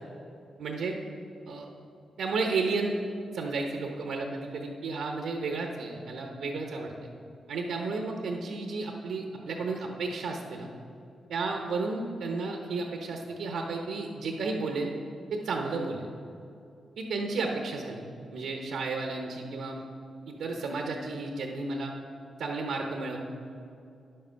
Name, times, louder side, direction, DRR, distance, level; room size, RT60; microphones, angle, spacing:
voice 1, 0.6-1.0 1.5-1.7 2.2-2.9 3.3-7.1 7.5-10.7 11.3-14.9 15.3-16.1 17.0-18.0 18.3-19.8 20.3-21.9 22.4-23.2, right 3 dB, 85° right, 2 dB, 1.0 m, -32 dB
10.0 x 7.7 x 5.7 m, 2.6 s
cardioid pair, 70°, 0 cm